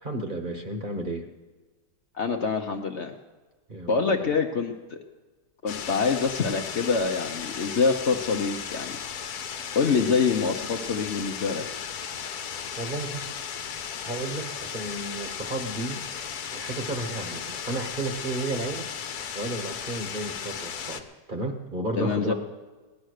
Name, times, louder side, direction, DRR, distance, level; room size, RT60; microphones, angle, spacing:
voice 1, 0.0-1.3 3.7-4.4 12.8-13.4 14.0-16.0 16.5-18.9 19.3-22.3, right 2 dB, 35° right, 4 dB, 1.3 m, -33 dB
voice 2, 2.2-3.1 3.9-5.0 5.6-9.0 9.7-11.7 22.0-22.3, left 5 dB, 50° left, 4 dB, 1.0 m, -25 dB
sound 1, 5.7-21.0, left 7 dB, 75° left, 1.4 m, -35 dB
17.0 x 11.0 x 6.5 m, 1.3 s
omnidirectional pair, 1.7 m